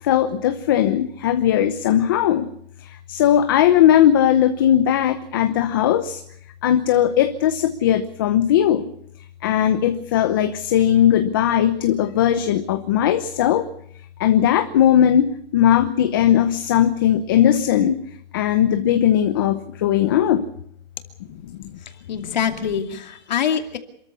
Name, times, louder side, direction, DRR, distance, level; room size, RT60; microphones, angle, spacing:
voice 1, 0.0-2.5 2.8-6.2 6.6-8.9 9.4-13.6 14.2-18.0 18.3-20.4 21.4-21.7, left 10 dB, 25° left, 9 dB, 0.9 m, -18 dB
voice 2, 21.8-23.8, left 8 dB, 50° left, 7 dB, 2.6 m, -25 dB
27.5 x 14.0 x 8.5 m, 0.69 s
hypercardioid pair, 175°, 29 cm